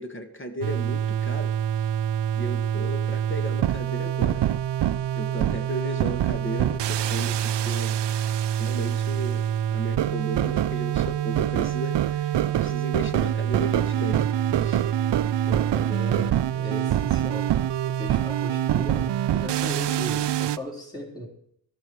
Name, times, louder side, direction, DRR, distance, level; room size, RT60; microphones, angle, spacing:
voice 1, 0.0-1.5 1.8-1.9 2.3-4.4 5.1-7.9 8.5-14.3 14.6-14.8, right 1 dB, 25° left, 7 dB, 1.6 m, -35 dB
sound 1, 0.6-20.6, right 10 dB, 65° right, 0.6 m, -25 dB
voice 2, 15.5-21.3, equal, 10° left, 0 dB, 4.1 m, -37 dB
13.5 x 13.5 x 4.7 m, 0.68 s
wide cardioid pair, 105°, 46 cm